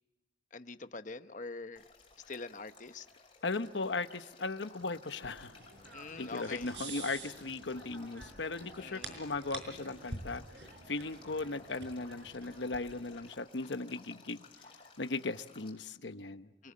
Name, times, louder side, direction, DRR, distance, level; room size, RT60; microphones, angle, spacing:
voice 1, 0.5-1.8 2.3-3.1 5.9-6.7 8.8-9.2 16.6-16.7, left 3 dB, 45° left, 10 dB, 1.0 m, -44 dB
Male speech man speaking / Stream / Trickle dribble, 1.8-15.7, left 4 dB, 30° left, 6.1 m, -58 dB
voice 2, 3.4-5.6 6.2-10.4 10.9-14.4 15.0-16.5, left 3 dB, 85° left, 10 dB, 1.0 m, -37 dB
sound 1, 4.8-13.3, right 3 dB, 75° right, 5.1 m, -49 dB
28.0 x 19.5 x 8.6 m, 1.1 s
head